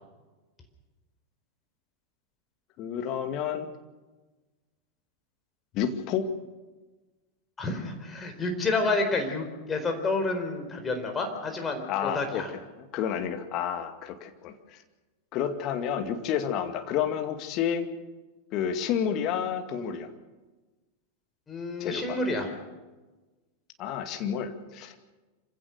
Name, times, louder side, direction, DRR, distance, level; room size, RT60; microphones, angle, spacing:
voice 1, 2.8-3.7 5.7-6.3 11.9-12.4 12.9-14.8 15.3-17.8 18.5-20.1 21.8-22.2 23.8-24.9, left 8 dB, 40° left, 7 dB, 2.3 m, -30 dB
voice 2, 7.6-12.5 21.5-22.5, left 3 dB, 20° left, 4 dB, 4.4 m, -29 dB
26.5 x 16.5 x 6.7 m, 1.2 s
figure-of-eight pair, 90°, 0 cm